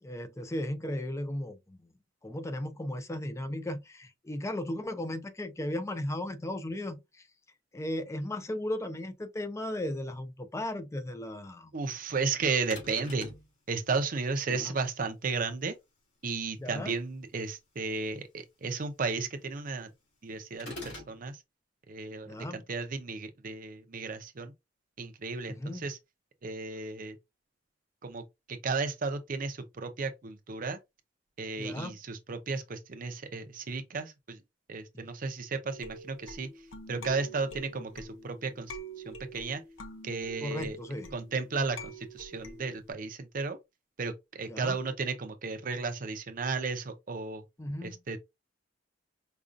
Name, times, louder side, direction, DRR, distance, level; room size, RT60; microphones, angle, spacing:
voice 1, 0.0-1.8 2.2-7.2 7.7-11.7 14.5-14.7 16.6-16.9 22.3-22.6 25.5-25.8 31.6-32.0 34.9-35.1 40.4-41.1 44.5-44.8 47.6-48.0, left 1 dB, 15° left, 0.4 m, -36 dB
voice 2, 11.7-13.3 13.7-15.7 16.2-19.9 20.2-21.4 21.9-24.5 25.0-26.0 26.4-27.2 28.0-28.2 28.5-30.8 31.4-34.4 34.7-36.5 36.9-38.7 39.0-39.6 40.0-40.8 41.1-43.6 44.0-47.4 47.8-48.2, right 4 dB, 45° right, 0.5 m, -34 dB
sound 1, 12.7-13.5 20.6-21.2, left 2 dB, 65° left, 1.8 m, -42 dB
sound 2, 35.7-42.9, right 1 dB, 90° left, 0.7 m, -46 dB
5.1 x 2.3 x 2.4 m
head